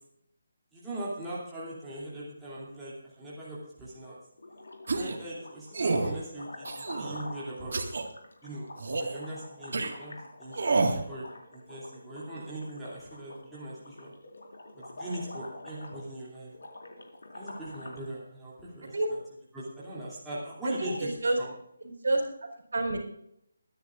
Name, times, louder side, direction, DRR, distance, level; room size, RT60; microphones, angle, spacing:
voice 1, 0.7-4.2 4.9-7.8 8.4-8.7 9.0-11.2 11.5-14.1 14.7-16.5 17.3-19.2 19.5-21.1 21.4-21.5, right 1 dB, 5° right, -11 dB, 2.9 m, -40 dB
sound 1, 4.4-5.0 5.3-18.1, left 2 dB, 85° left, 4.5 m, -46 dB
sound 2, 4.9-5.2 5.7-6.1 6.7-7.2 7.7-8.0 8.8-9.2 9.7-9.9 10.5-11.0, right 3 dB, 55° right, 1.9 m, -28 dB
voice 2, 20.8-21.4 21.8-23.0, right 2 dB, 75° right, 2 dB, 4.3 m, -29 dB
23.0 x 10.5 x 2.5 m, 0.74 s
hypercardioid pair, 175°, 0 cm